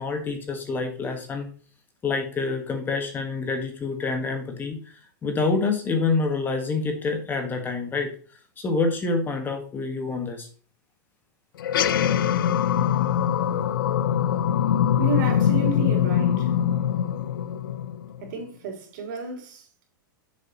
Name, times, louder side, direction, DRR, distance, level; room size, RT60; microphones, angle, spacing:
voice 1, 0.0-1.5 2.0-4.8 5.2-8.1 8.6-10.5, left 3 dB, 20° left, 1.4 m, -27 dB
sound 1, 11.6-18.3, left 9 dB, 90° left, 0.6 m, -23 dB
voice 2, 15.0-16.6 18.2-19.9, right 4 dB, 65° right, 3.1 m, -32 dB
8.1 x 7.2 x 2.9 m
supercardioid pair, 145°, 11 cm